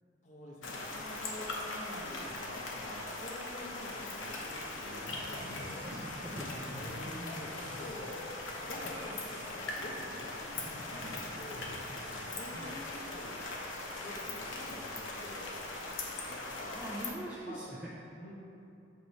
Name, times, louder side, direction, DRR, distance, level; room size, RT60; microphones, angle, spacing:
voice 1, 0.2-5.9 6.7-8.3 8.6-11.7 12.1-13.4 13.9-15.5 16.3-17.1 17.4-17.7 18.1-18.3, left 1 dB, 40° left, -3 dB, 0.9 m, -47 dB
sound 1, 0.6-17.1, left 2 dB, 80° left, 0.7 m, -40 dB
sound 2, 5.0-6.9 7.2-12.3, equal, 70° right, 0.9 m, -49 dB
voice 2, 5.8-7.5 12.5-12.8 16.7-17.9, right 1 dB, 5° right, -6 dB, 0.4 m, -44 dB
6.6 x 3.0 x 5.2 m, 2.8 s
head